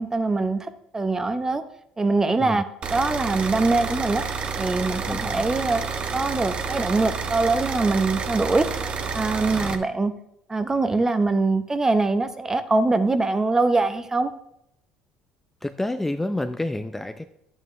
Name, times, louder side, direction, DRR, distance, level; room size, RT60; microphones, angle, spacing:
voice 1, 0.0-1.6 2.0-2.6 2.9-4.2 4.6-5.8 6.1-8.7 9.1-10.1 10.5-14.3, right 3 dB, 20° right, 11 dB, 0.9 m, -23 dB
sound 1, 2.8-9.7, right 5 dB, 40° right, 1.0 m, -29 dB
voice 2, 5.1-5.5 9.5-9.8 15.6-17.3, left 1 dB, 10° left, 8 dB, 0.5 m, -29 dB
10.5 x 9.1 x 3.3 m, 0.77 s
supercardioid pair, 80°, 3 cm